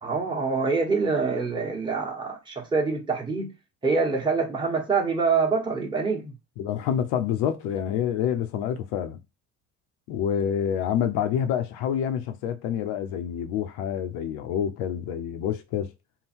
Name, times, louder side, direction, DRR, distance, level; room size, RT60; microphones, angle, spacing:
voice 1, 0.0-3.5 3.8-6.3, right 4 dB, 10° right, 1.1 m, -25 dB
voice 2, 6.6-9.2 10.1-15.9, left 9 dB, 85° left, 0.8 m, -27 dB
3.8 x 2.2 x 4.3 m
cardioid pair, 125°, 38 cm